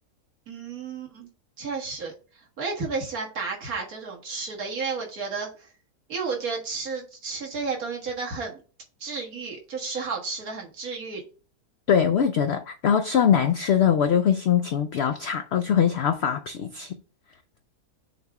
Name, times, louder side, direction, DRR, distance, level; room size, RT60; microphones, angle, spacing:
voice 1, 0.5-1.3 1.6-2.1 2.6-5.5 6.1-8.6 9.0-11.2, right 4 dB, 65° right, 2.0 m, -32 dB
voice 2, 11.9-17.0, left 8 dB, 80° left, 0.5 m, -22 dB
6.5 x 3.4 x 4.7 m
omnidirectional pair, 1.7 m